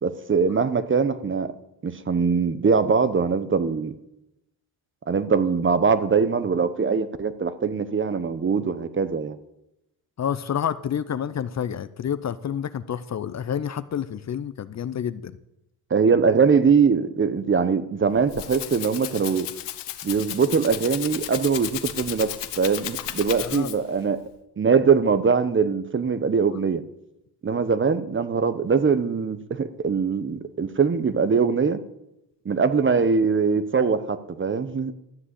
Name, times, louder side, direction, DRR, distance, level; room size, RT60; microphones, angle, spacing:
voice 1, 0.0-1.5 1.8-3.9 5.1-9.4 15.9-19.5 20.0-24.2 24.6-26.8 27.4-31.8 32.4-34.9, right 5 dB, 30° right, 1.1 m, -22 dB
voice 2, 10.2-15.4 23.4-23.7, left 8 dB, 40° left, 0.8 m, -29 dB
Rattle (instrument), 18.0-24.0, left 13 dB, 75° left, 1.3 m, -34 dB
13.0 x 7.4 x 8.4 m
supercardioid pair, 80°, 42 cm